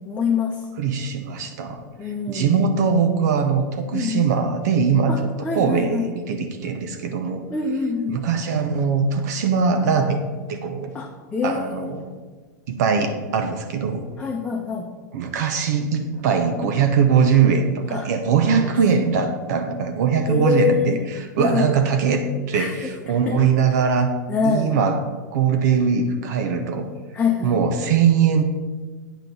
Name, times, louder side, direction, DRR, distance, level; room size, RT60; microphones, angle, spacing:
voice 1, 0.1-0.6 2.0-2.6 3.9-4.3 5.1-6.1 7.5-8.2 10.9-11.9 14.2-14.8 17.9-18.1 18.6-18.7 20.3-21.0 21.4-21.7 22.5-22.7 23.3-23.4 24.3-24.7 27.1-27.6, left 5 dB, 15° left, -1 dB, 0.8 m, -24 dB
voice 2, 0.8-5.1 5.5-7.4 8.1-10.2 10.5-10.9 11.4-12.1 12.7-14.0 15.1-24.1 24.4-25.0 25.3-26.9 27.4-28.4, right 6 dB, 65° right, 6 dB, 0.9 m, -21 dB
9.1 x 3.8 x 6.9 m, 1.4 s
hypercardioid pair, 120°, 10 cm